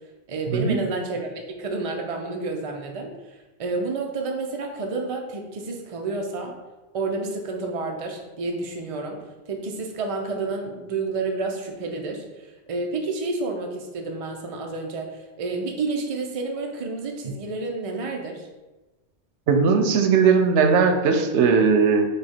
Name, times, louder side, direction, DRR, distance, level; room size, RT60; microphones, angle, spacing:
voice 1, 0.3-3.1 3.6-6.5 6.9-9.2 9.5-15.1 15.4-18.5, right 3 dB, 40° right, 2 dB, 0.6 m, -30 dB
voice 2, 19.5-22.0, right 5 dB, 85° right, 5 dB, 0.9 m, -18 dB
5.0 x 2.4 x 4.3 m, 1.1 s
omnidirectional pair, 1.1 m